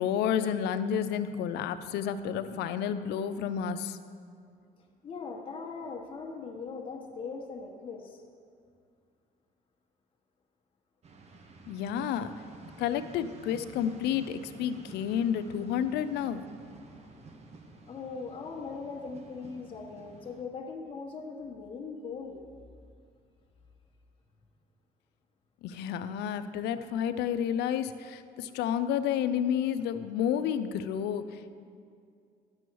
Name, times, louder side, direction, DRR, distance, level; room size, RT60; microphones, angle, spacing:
voice 1, 0.0-4.0 11.7-12.3 12.8-16.4 25.6-31.6, left 9 dB, 80° left, 11 dB, 0.5 m, -30 dB
voice 2, 4.8-8.2 17.9-22.5, left 4 dB, 30° left, -1 dB, 1.1 m, -40 dB
sound 1, 11.0-20.4, right 3 dB, 40° right, 1.0 m, -51 dB
10.5 x 7.0 x 4.6 m, 2.3 s
cardioid pair, 110°, 17 cm